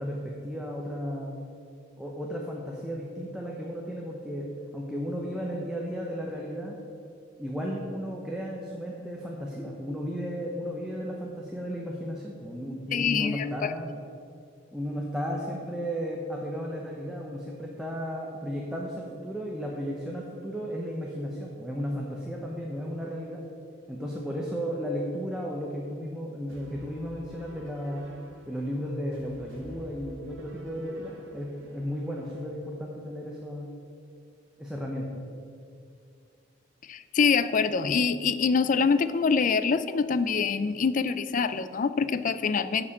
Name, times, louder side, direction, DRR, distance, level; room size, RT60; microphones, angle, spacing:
voice 1, 0.0-1.4 2.0-4.5 4.7-6.8 7.4-13.9 14.7-23.4 23.9-28.1 28.5-33.7 34.6-35.1, equal, 5° right, -2 dB, 0.8 m, -34 dB
voice 2, 12.9-13.4 36.9-42.9, left 5 dB, 40° left, 13 dB, 0.4 m, -25 dB
sound 1, 26.5-32.4, equal, 80° right, 1.5 m, -50 dB
9.6 x 5.0 x 7.1 m, 2.4 s
head